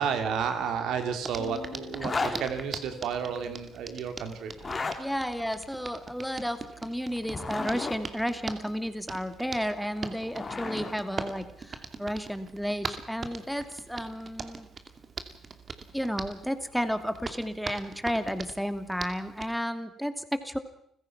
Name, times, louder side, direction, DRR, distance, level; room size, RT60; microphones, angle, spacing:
voice 1, 0.0-4.5 4.8-5.0, right 7 dB, 75° right, 7 dB, 2.7 m, -31 dB
Hands, 1.2-19.5, right 4 dB, 40° right, 2.5 m, -42 dB
sound 1, 1.4-3.8, left 8 dB, 55° left, 4.3 m, -47 dB
Zipper (clothing), 1.9-2.4 4.5-5.0 7.1-8.0 9.8-10.9, left 4 dB, 35° left, 3.5 m, -33 dB
voice 2, 2.0-2.4 5.0-14.7 15.9-20.6, equal, ahead, 9 dB, 2.6 m, -32 dB
29.5 x 15.5 x 6.0 m, 0.73 s
supercardioid pair, 60°, 0 cm